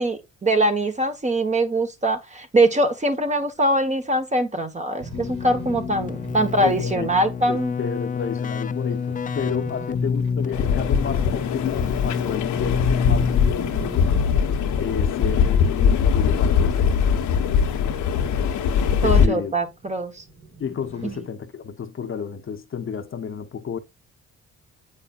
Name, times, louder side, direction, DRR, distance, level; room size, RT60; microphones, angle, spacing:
voice 1, 0.0-7.7 19.0-20.2 21.0-21.2, right 1 dB, 25° right, 1.3 m, -22 dB
sound 1, 5.0-21.2, right 4 dB, 85° right, 4.1 m, -42 dB
Keyboard (musical), 5.1-13.8, left 5 dB, 25° left, 0.5 m, -28 dB
voice 2, 6.6-7.1 7.5-14.1 14.8-16.8 19.0-19.5 20.6-23.8, left 7 dB, 45° left, 0.9 m, -31 dB
sound 2, 10.5-19.3, left 7 dB, 90° left, 1.1 m, -21 dB
8.2 x 5.5 x 2.5 m
cardioid pair, 90°, 30 cm